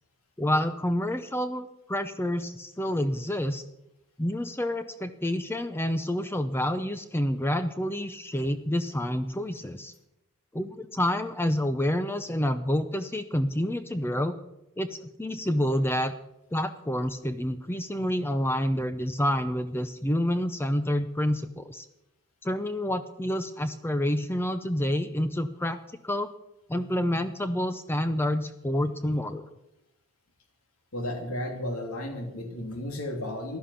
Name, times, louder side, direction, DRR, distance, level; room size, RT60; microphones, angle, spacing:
voice 1, 0.4-3.6 4.2-9.9 10.5-14.3 14.8-16.1 16.5-21.9 22.4-25.8 26.0-26.3 26.7-29.5, left 1 dB, 10° left, 9 dB, 0.6 m, -28 dB
voice 2, 30.9-33.6, left 1 dB, 75° left, 3 dB, 2.9 m, -33 dB
15.5 x 11.5 x 5.8 m, 0.89 s
head